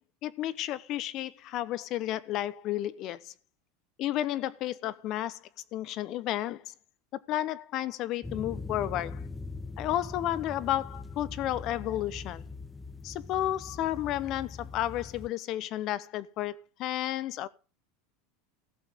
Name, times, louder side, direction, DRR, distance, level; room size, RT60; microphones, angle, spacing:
voice 1, 0.2-3.3 4.0-5.4 5.7-6.7 7.3-9.3 9.8-12.5 13.0-17.5, left 13 dB, 40° left, 0.9 m, -32 dB
sound 1, 8.2-15.3, left 3 dB, 10° left, 0.9 m, -41 dB
16.0 x 7.2 x 5.2 m
supercardioid pair, 150°, 0 cm